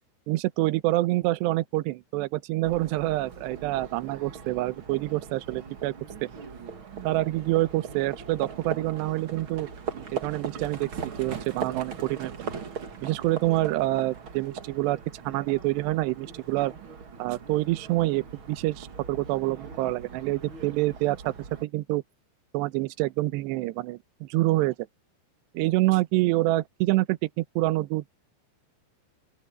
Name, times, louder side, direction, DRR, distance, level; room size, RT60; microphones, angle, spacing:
voice 1, 0.3-5.9 6.2-6.3 7.0-9.7 9.9-12.3 13.0-15.0 15.2-16.7 17.2-21.3 21.6-22.0 22.5-24.8 25.5-28.1, right 18 dB, 75° right, 2.8 m, -27 dB
Livestock farm animals working animals, 2.6-21.6, right 6 dB, 60° right, 1.3 m, -40 dB
open air
omnidirectional pair, 5.4 m